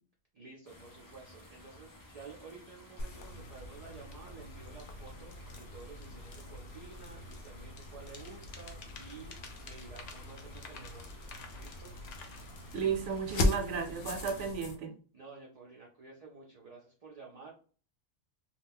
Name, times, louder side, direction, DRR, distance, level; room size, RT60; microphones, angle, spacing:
voice 1, 0.3-11.2 11.5-11.9 15.1-17.5, right 4 dB, 50° right, -2 dB, 0.5 m, -52 dB
sound 1, 0.6-14.5, left 1 dB, 35° left, 0.3 m, -55 dB
sound 2, 3.0-14.8, left 2 dB, 65° left, 0.7 m, -40 dB
sound 3, 4.8-4.9 5.3-7.5 7.8-12.9, left 5 dB, 80° left, 1.0 m, -52 dB
voice 2, 12.7-14.9, right 6 dB, 80° right, 4 dB, 0.9 m, -34 dB
2.4 x 2.1 x 3.4 m, 0.40 s
omnidirectional pair, 1.2 m